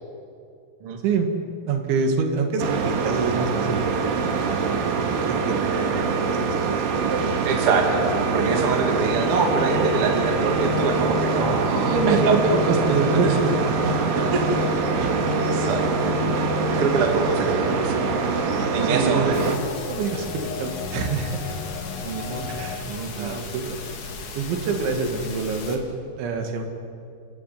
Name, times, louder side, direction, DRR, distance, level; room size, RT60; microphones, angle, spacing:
voice 1, 1.7-7.5 11.8-14.3 15.0-15.1 18.8-21.6 22.5-22.8 23.1-23.8 24.4-25.8 26.2-26.7, right 4 dB, 80° right, 4 dB, 4.3 m, -27 dB
sound 1, 2.6-19.6, right 5 dB, 60° right, 3.0 m, -24 dB
voice 2, 7.4-8.0 8.3-12.6 12.9-13.0 13.8-14.6 15.3-16.1 16.7-18.1 18.7-19.4 22.0-22.5 22.9-23.4, right 4 dB, 35° right, 2 dB, 2.8 m, -25 dB
sound 2, 8.0-22.8, left 8 dB, 85° left, 1.8 m, -33 dB
sound 3, 19.3-25.8, left 3 dB, 50° left, 3.0 m, -37 dB
29.0 x 15.0 x 9.4 m, 2.5 s
omnidirectional pair, 5.3 m